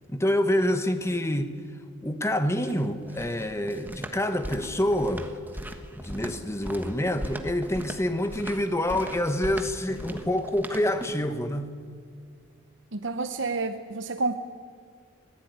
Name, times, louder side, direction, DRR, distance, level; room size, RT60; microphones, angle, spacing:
voice 1, 0.1-1.5 2.0-5.3 5.9-11.7, left 1 dB, 15° left, 1.2 m, -27 dB
sound 1, 2.4-11.3, equal, 10° right, 1.3 m, -39 dB
voice 2, 12.9-14.4, right 3 dB, 60° right, 0.9 m, -29 dB
25.5 x 16.5 x 9.5 m
head